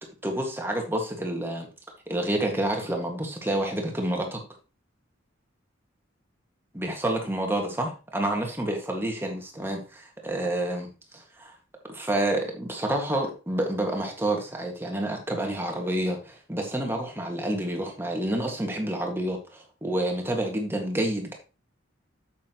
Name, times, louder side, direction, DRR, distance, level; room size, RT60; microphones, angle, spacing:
voice 1, 0.2-1.7 2.1-4.4 6.7-10.9 11.1-11.5 11.9-21.3, right 1 dB, 10° right, 2 dB, 1.8 m, -29 dB
8.3 x 7.6 x 3.0 m, 0.31 s
head